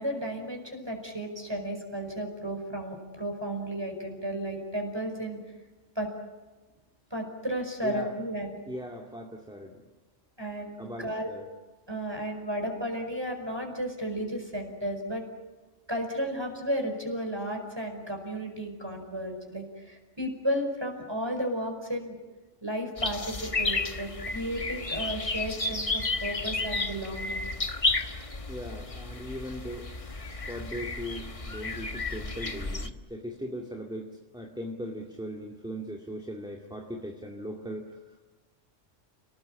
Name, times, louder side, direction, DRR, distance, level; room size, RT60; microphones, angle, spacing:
voice 1, 0.0-5.4 5.9-6.1 7.1-8.6 10.4-11.3 11.9-15.2 15.9-22.2 22.6-27.5, equal, 20° right, 3 dB, 5.0 m, -33 dB
voice 2, 7.8-8.1 8.7-9.9 10.8-11.5 28.5-30.2 30.5-38.0, equal, 5° right, 1 dB, 2.2 m, -39 dB
sound 1, 23.0-32.9, left 3 dB, 30° left, 1.3 m, -32 dB
29.5 x 19.0 x 8.8 m, 1.2 s
omnidirectional pair, 1.2 m